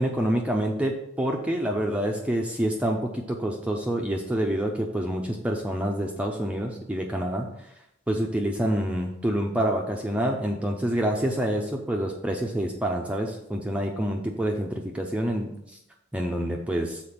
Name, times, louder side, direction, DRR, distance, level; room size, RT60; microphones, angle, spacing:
voice 1, 0.0-7.7 8.1-15.5 16.1-17.0, right 1 dB, 5° right, 1 dB, 0.6 m, -27 dB
6.8 x 4.4 x 5.8 m, 0.78 s
head